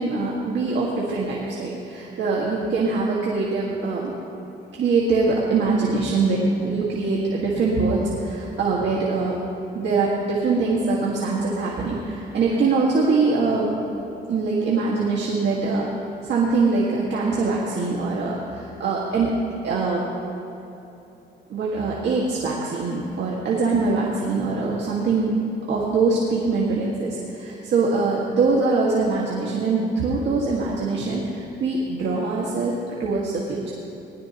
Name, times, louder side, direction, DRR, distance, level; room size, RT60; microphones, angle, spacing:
voice 1, 0.0-4.1 4.7-9.4 9.7-13.8 14.3-15.9 16.2-20.0 21.5-25.3 25.7-33.6, right 3 dB, 65° right, -4 dB, 1.9 m, -23 dB
20.0 x 12.0 x 3.0 m, 3.0 s
cardioid pair, 90°, 20 cm